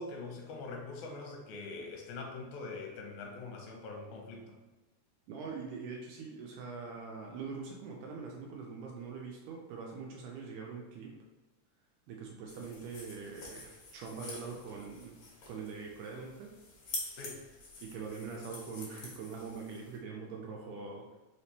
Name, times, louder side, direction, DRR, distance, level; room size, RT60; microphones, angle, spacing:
voice 1, 0.0-4.6 17.2-17.4, left 3 dB, 75° left, 1 dB, 2.1 m, -43 dB
voice 2, 5.3-11.1 12.1-15.2 15.5-16.5 17.8-21.2, right 5 dB, 80° right, 0 dB, 2.0 m, -43 dB
sound 1, 12.5-20.0, left 2 dB, 60° left, 1.8 m, -47 dB
4.9 x 3.3 x 2.8 m, 1.1 s
omnidirectional pair, 3.6 m